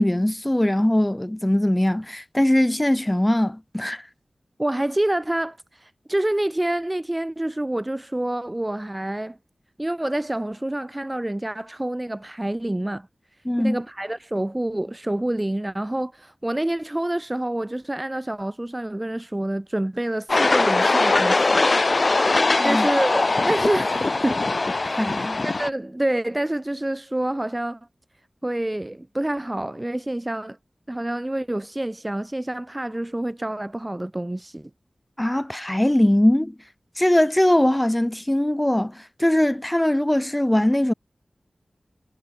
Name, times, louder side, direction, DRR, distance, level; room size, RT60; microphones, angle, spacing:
voice 1, 0.0-4.0 13.4-13.8 22.6-22.9 25.0-25.4 35.2-36.5 37.0-40.9, left 1 dB, 15° left, 4.0 m, -21 dB
voice 2, 4.6-5.6 5.8-9.4 9.8-13.1 13.6-21.6 22.6-24.4 24.8-27.8 28.4-30.6 30.9-34.7, right 1 dB, 20° right, 2.9 m, -27 dB
sound 1, 20.3-25.7, left 3 dB, 50° left, 0.6 m, -21 dB
wide cardioid pair, 80°, 0 cm